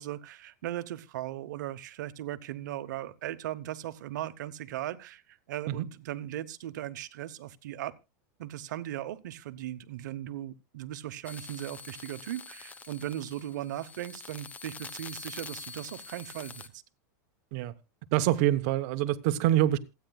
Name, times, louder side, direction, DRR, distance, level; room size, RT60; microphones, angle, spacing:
voice 1, 0.0-7.9 8.4-16.8, right 13 dB, 75° right, 1.0 m, -38 dB
sound 1, 11.2-16.7, left 5 dB, 15° left, 0.9 m, -45 dB
voice 2, 18.1-19.8, right 13 dB, 55° right, 1.0 m, -25 dB
27.0 x 9.2 x 2.3 m
supercardioid pair, 140°, 10 cm